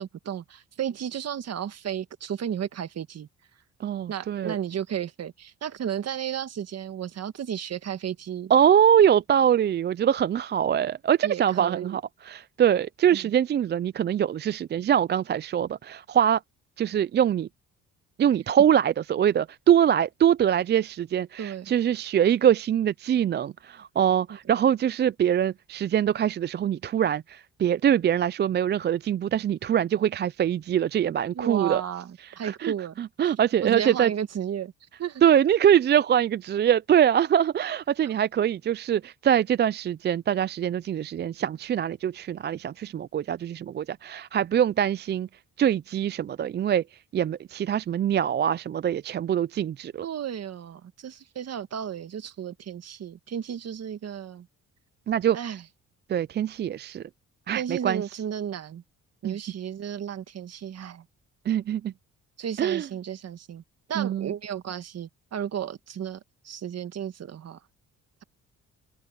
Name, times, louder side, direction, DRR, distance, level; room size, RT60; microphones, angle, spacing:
voice 1, 0.0-3.3 4.1-8.5 11.2-12.0 13.1-13.3 21.4-21.7 31.3-33.0 33.6-34.7 35.0-35.2 50.0-54.5 55.3-55.6 57.5-58.8 59.2-61.0 62.4-63.6 63.9-66.2 66.4-67.6, right 9 dB, 55° right, 1.7 m, -33 dB
voice 2, 3.8-4.6 8.5-16.4 16.8-17.5 18.2-31.8 32.2-34.1 35.2-45.3 45.6-46.8 47.1-50.1 55.1-55.4 56.1-57.0 57.5-58.0 59.2-59.4 61.5-61.9 62.6-62.9 64.0-64.3, right 9 dB, 35° right, 0.4 m, -23 dB
cardioid pair, 90°, 30 cm